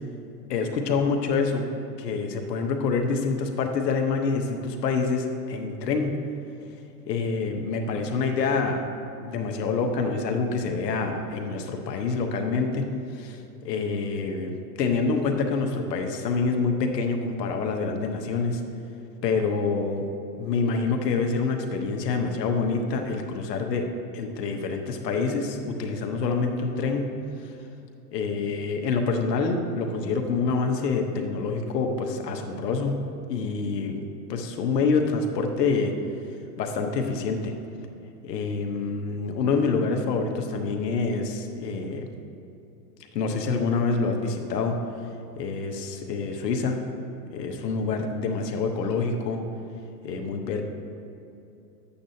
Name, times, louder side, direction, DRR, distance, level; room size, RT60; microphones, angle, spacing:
voice 1, 0.5-1.7 2.0-6.1 7.1-8.8 9.2-12.8 13.1-18.6 19.2-20.1 20.4-23.9 24.1-27.1 27.4-27.5 28.1-32.9 33.3-35.9 36.6-37.5 38.2-42.1 43.1-44.7 45.4-46.8 47.3-49.4 50.0-50.6, left 4 dB, 85° left, 4 dB, 1.2 m, -26 dB
11.5 x 8.5 x 2.8 m, 2.7 s
hypercardioid pair, 130°, 47 cm